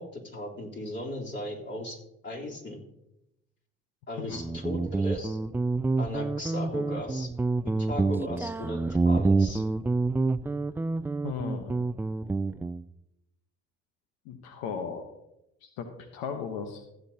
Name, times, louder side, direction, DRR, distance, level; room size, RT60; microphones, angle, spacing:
voice 1, 0.0-2.0 2.2-2.8 4.1-5.4 6.0-7.3 7.6-8.8 9.0-9.6, left 1 dB, 35° left, -2 dB, 3.5 m, -36 dB
Guitar, 4.3-12.8, right 3 dB, 5° right, 0.3 m, -27 dB
voice 2, 11.2-11.8 14.3-15.1 15.6-15.9 16.1-16.8, left 6 dB, 85° left, 6 dB, 1.1 m, -36 dB
15.5 x 9.2 x 2.8 m, 0.85 s
supercardioid pair, 65°, 31 cm